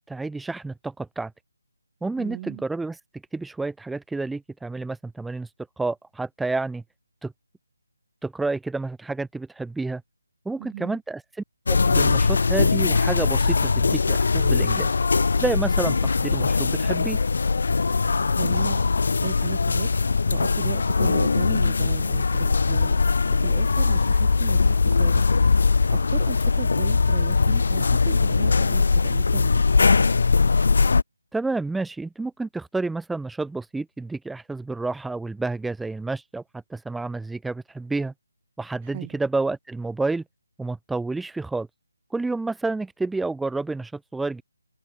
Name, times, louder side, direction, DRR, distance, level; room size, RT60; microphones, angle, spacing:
voice 1, 0.1-1.3 2.0-3.0 3.3-5.5 5.8-6.8 7.2-7.3 8.2-10.0 10.4-11.2 11.7-14.9 15.4-17.2 31.3-38.1 38.6-40.2 40.6-41.7 42.1-44.4, right 3 dB, 5° right, 1.0 m, -29 dB
voice 2, 2.2-2.6 10.6-11.0 18.4-18.8 19.2-19.9 20.3-22.9 23.3-25.2 25.9-29.6 38.8-39.2, right 15 dB, 25° right, 0.6 m, -35 dB
sound 1, 11.7-31.0, left 4 dB, 60° left, 0.3 m, -21 dB
figure-of-eight pair, 160°, 0 cm